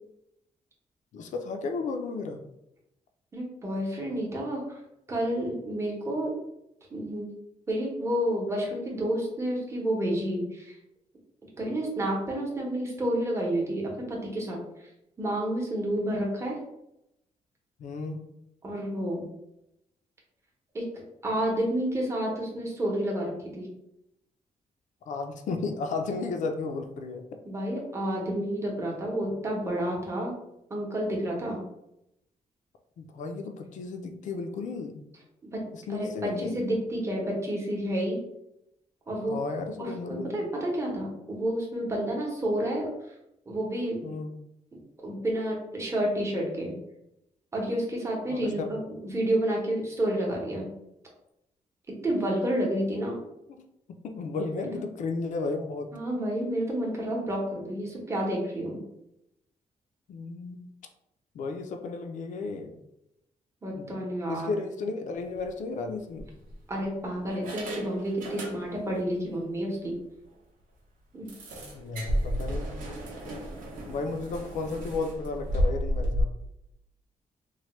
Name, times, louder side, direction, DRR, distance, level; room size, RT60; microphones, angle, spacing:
voice 1, 1.1-2.4 17.8-18.2 25.1-27.4 33.0-35.1 35.7-36.6 39.3-40.5 44.0-44.3 48.3-48.7 53.5-55.9 60.1-60.7 61.3-62.7 63.8-63.9 64.3-66.3 71.7-72.7 73.9-76.4, left 3 dB, 65° left, 5 dB, 0.4 m, -34 dB
voice 2, 3.3-4.8 5.1-6.3 6.9-7.3 7.7-10.8 11.6-14.9 15.2-16.6 18.6-19.2 20.7-20.9 21.2-23.7 27.4-30.3 30.7-31.6 35.4-35.6 35.9-38.2 39.1-39.4 39.8-42.9 43.5-44.1 45.0-46.7 47.5-50.7 52.0-53.2 55.9-58.8 63.6-64.5 66.7-69.9 71.1-71.3, right 1 dB, 20° right, -2 dB, 0.8 m, -30 dB
sound 1, 65.3-65.5 66.2-66.8 67.3-69.0 69.3-69.4 69.8-69.9 70.3-70.4 71.3-76.2, equal, 85° right, 0.8 m, -33 dB
3.1 x 2.1 x 3.0 m, 0.83 s
wide cardioid pair, 145°, 14 cm